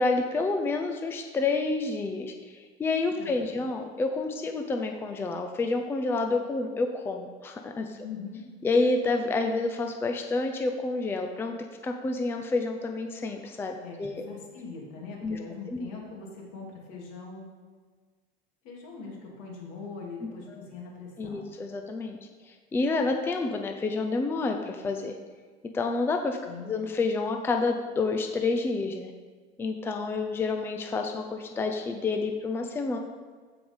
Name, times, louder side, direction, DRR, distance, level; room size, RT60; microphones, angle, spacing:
voice 1, 0.0-8.0 8.6-11.5 11.8-14.3 15.2-15.4 15.7-15.9 21.2-22.2 22.5-25.1 25.7-26.4 26.6-29.1 29.6-33.0, left 3 dB, 10° left, 4 dB, 0.5 m, -29 dB
voice 2, 3.2-3.6 8.0-8.4 13.8-17.5 18.6-21.5 26.4-26.7, left 5 dB, 75° left, -2 dB, 3.1 m, -42 dB
15.0 x 5.0 x 5.4 m, 1.5 s
cardioid pair, 175°, 20 cm